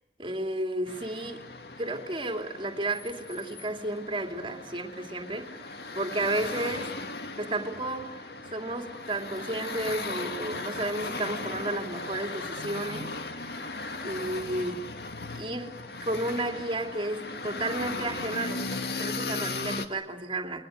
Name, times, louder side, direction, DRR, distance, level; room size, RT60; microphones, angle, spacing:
voice 1, 0.2-1.5 1.8-5.7 5.9-6.9 7.4-13.6 14.0-14.9 15.4-20.7, right 2 dB, 30° right, 2.9 m, -33 dB
sound 1, 0.9-19.9, left 3 dB, 65° left, 2.2 m, -37 dB
30.0 x 23.0 x 6.6 m
head